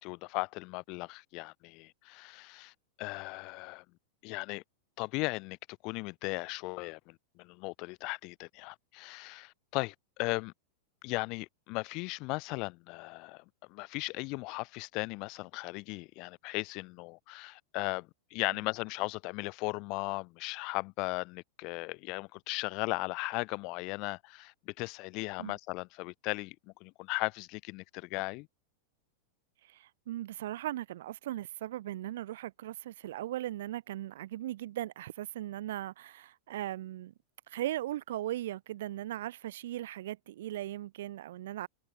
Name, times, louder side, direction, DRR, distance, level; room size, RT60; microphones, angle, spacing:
voice 1, 0.0-2.7 3.0-3.8 4.2-4.6 5.0-10.5 11.0-13.4 13.7-26.6 26.8-28.5, left 26 dB, 40° left, 0.6 m, -37 dB
voice 2, 29.6-37.1 37.5-41.7, right 14 dB, 70° right, 1.1 m, -38 dB
supercardioid pair, 160°, 0 cm